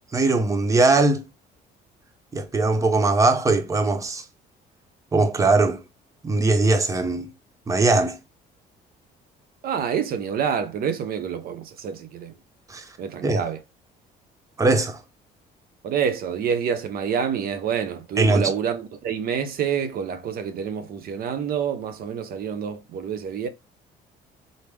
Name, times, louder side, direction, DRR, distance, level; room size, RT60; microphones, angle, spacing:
voice 1, 0.1-1.2 2.3-4.2 5.1-5.8 6.2-7.3 7.7-8.2 12.7-12.8 13.2-13.4 14.6-15.0 18.2-18.5, right 3 dB, 20° right, 0.8 m, -20 dB
voice 2, 9.6-12.4 13.0-13.6 15.8-23.5, right 7 dB, 60° right, 0.7 m, -27 dB
3.9 x 3.4 x 3.3 m
cardioid pair, 110°, 17 cm